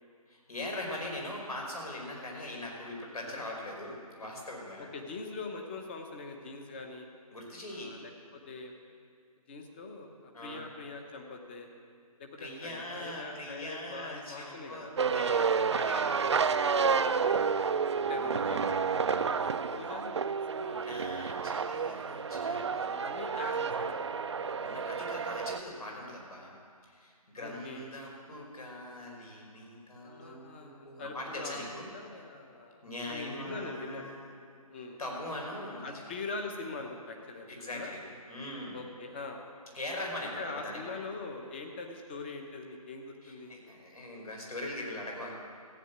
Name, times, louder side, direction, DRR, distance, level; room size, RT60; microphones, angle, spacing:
voice 1, 0.3-4.9 7.3-8.0 10.3-10.6 12.4-16.3 16.6-16.9 18.1-18.5 20.8-22.9 23.2-26.5 26.8-31.9 32.8-34.3 35.0-36.0 37.5-38.0 38.3-38.8 39.7-41.0 43.2-45.3, left 1 dB, 75° left, -1 dB, 4.8 m, -41 dB
voice 2, 4.8-7.1 7.7-8.8 9.5-11.7 12.2-14.9 16.0-16.3 16.8-17.4 18.0-20.9 22.4-24.1 26.1-26.2 27.4-27.9 30.0-31.6 31.9-34.1 34.7-35.0 35.8-37.5 37.7-37.9 38.7-39.4 40.4-43.5, left 3 dB, 15° left, 3 dB, 0.9 m, -43 dB
sound 1, 15.0-25.6, right 5 dB, 50° right, 0.5 m, -30 dB
14.5 x 9.2 x 7.9 m, 2.1 s
figure-of-eight pair, 165°, 19 cm